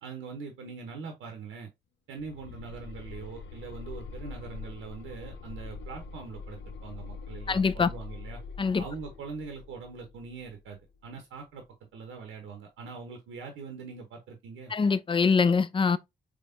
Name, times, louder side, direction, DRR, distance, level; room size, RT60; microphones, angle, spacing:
voice 1, 0.0-1.7 2.1-8.4 8.8-11.6 11.9-14.7, right 5 dB, 75° right, 0.7 m, -42 dB
sound 1, 2.2-11.1, left 4 dB, 65° left, 0.6 m, -43 dB
voice 2, 7.5-7.9 8.6-8.8 14.7-16.0, left 5 dB, 25° left, 0.4 m, -24 dB
3.5 x 3.2 x 2.5 m
hypercardioid pair, 40°, 20 cm